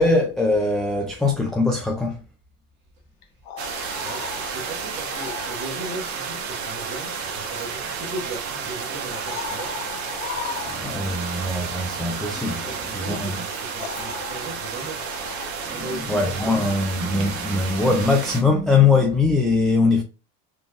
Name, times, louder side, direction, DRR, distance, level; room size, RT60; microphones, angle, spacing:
voice 1, 0.0-2.2 10.7-13.3 15.7-15.8 16.1-20.0, left 3 dB, ahead, 0.3 m, -21 dB
sound 1, 3.2-5.8 7.6-7.7 9.0-11.2 13.1-13.2 13.8-15.9 19.0-19.1, left 7 dB, 80° left, 0.9 m, -37 dB
sound 2, 3.6-18.4, right 5 dB, 90° right, 1.1 m, -31 dB
voice 2, 4.0-9.7 12.6-15.0 15.7-16.2, right 1 dB, 35° right, 1.3 m, -37 dB
4.1 x 3.5 x 2.4 m
cardioid pair, 150°, 32 cm